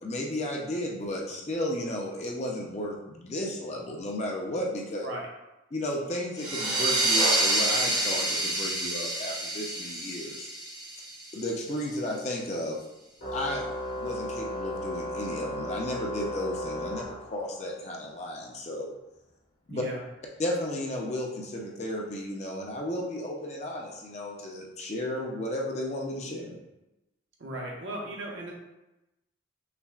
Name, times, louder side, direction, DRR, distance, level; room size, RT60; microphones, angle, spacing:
voice 1, 0.0-5.1 5.7-10.5 11.3-12.8 13.3-13.7 13.9-18.9 19.7-19.8 20.4-26.6, left 1 dB, 35° left, -1 dB, 0.5 m, -33 dB
sound 1, 6.4-11.7, right 2 dB, 20° right, 0.6 m, -28 dB
Organ, 13.2-17.7, left 1 dB, 70° left, 1.4 m, -35 dB
voice 2, 19.7-20.0 27.4-28.5, right 1 dB, 70° right, -2 dB, 0.8 m, -37 dB
5.6 x 2.1 x 2.3 m, 0.97 s
head